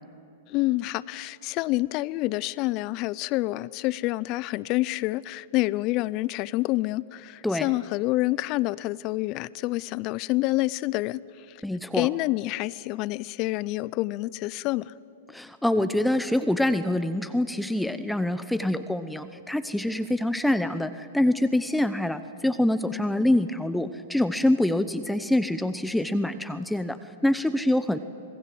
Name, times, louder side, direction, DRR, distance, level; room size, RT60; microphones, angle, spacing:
voice 1, 0.5-11.2 11.9-14.9, left 19 dB, 40° left, 20 dB, 0.6 m, -27 dB
voice 2, 11.6-12.1 15.3-28.0, left 1 dB, 5° left, 11 dB, 0.9 m, -25 dB
26.5 x 19.5 x 7.8 m, 2.6 s
hypercardioid pair, 110°, 0 cm